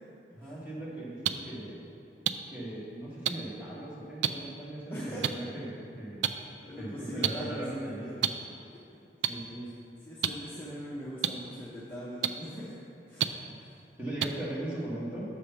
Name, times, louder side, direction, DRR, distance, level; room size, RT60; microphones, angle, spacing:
voice 1, 0.3-1.8 2.5-6.2 6.8-8.1 9.3-9.7 14.0-15.2, right 1 dB, 10° right, -8 dB, 1.6 m, -38 dB
sound 1, 1.2-1.3 2.3-2.4 3.3-3.4 4.2-4.3 5.2-5.3 6.2-6.3 7.2-7.3 8.2-8.3 9.2-9.3 10.2-10.3 11.2-11.3 12.2-12.3 13.2-13.3 14.2-14.3, right 11 dB, 85° right, 0.3 m, -26 dB
voice 2, 4.9-5.3 6.5-7.6 8.0-8.1 10.0-12.7 13.1-13.3 13.6-13.7, equal, 10° left, -8 dB, 0.8 m, -41 dB
6.9 x 5.0 x 5.6 m, 2.7 s
head